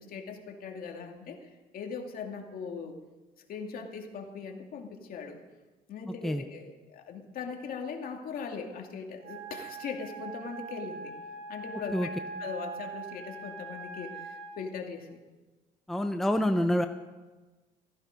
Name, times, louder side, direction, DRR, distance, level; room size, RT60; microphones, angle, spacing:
voice 1, 0.0-3.0 3.4-5.4 5.9-11.1 11.5-12.1 12.4-15.2, left 5 dB, 60° left, 3 dB, 2.4 m, -40 dB
Wind instrument woodwind instrument, 9.2-14.6, right 3 dB, 85° right, 4.1 m, -42 dB
voice 2, 15.9-16.9, equal, ahead, 6 dB, 0.8 m, -27 dB
15.5 x 15.5 x 5.2 m, 1.2 s
cardioid pair, 110°, 17 cm